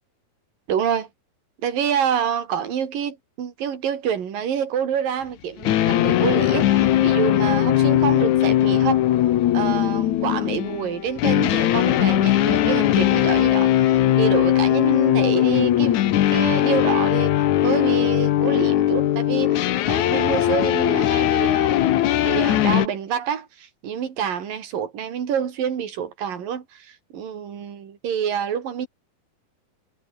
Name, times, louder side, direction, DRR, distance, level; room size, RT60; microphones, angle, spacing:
voice 1, 0.7-1.1 1.6-9.0 9.5-17.3 17.6-21.8 22.2-28.9, right 8 dB, 60° right, 4.6 m, -27 dB
sound 1, 5.6-22.9, left 13 dB, 65° left, 2.1 m, -19 dB
omnidirectional pair, 4.5 m